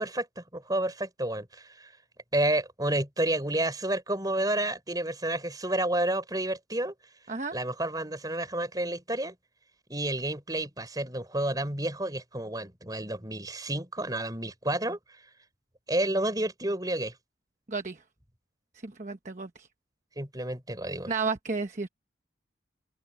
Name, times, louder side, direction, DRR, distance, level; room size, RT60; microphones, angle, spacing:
voice 1, 0.0-1.9 2.3-6.9 7.5-9.3 9.9-15.0 15.9-17.1 20.2-21.1, right 1 dB, 20° right, 4.7 m, -30 dB
voice 2, 17.7-18.0 18.8-19.7 21.1-21.9, right 4 dB, 40° right, 1.0 m, -32 dB
open air
head